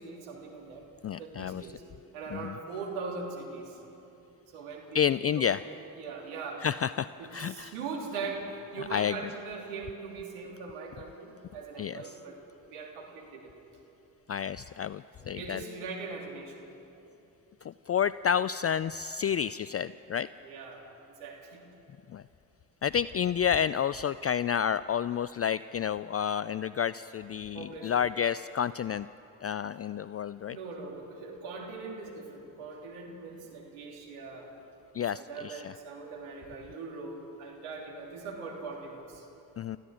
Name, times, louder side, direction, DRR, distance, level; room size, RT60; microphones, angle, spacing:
voice 1, 0.0-0.9 1.2-1.8 2.1-3.8 4.5-6.7 7.2-12.4 12.7-13.5 15.2-16.6 20.4-20.8 21.2-21.6 27.5-27.9 30.5-34.5 35.1-39.3, right 4 dB, 80° right, -1 dB, 3.2 m, -41 dB
voice 2, 1.0-1.7 2.3-2.6 4.9-5.6 6.6-7.8 8.8-9.3 11.8-12.2 14.3-15.6 17.6-20.3 22.1-22.2 22.8-29.1 29.4-30.6 34.9-35.8 39.6-39.8, left 8 dB, 30° left, 16 dB, 0.4 m, -30 dB
30.0 x 15.0 x 6.3 m, 2.9 s
hypercardioid pair, 40°, 49 cm